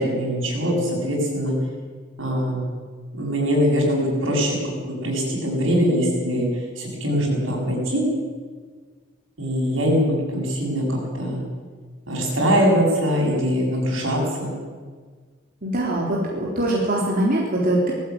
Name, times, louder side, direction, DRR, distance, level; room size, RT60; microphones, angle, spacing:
voice 1, 0.0-1.5 2.2-2.6 3.1-6.5 6.8-8.0 9.4-11.4 12.1-14.5, equal, 80° right, -1 dB, 7.9 m, -22 dB
voice 2, 15.6-17.9, right 1 dB, 50° right, -3 dB, 3.9 m, -22 dB
19.0 x 15.5 x 9.6 m, 1.5 s
head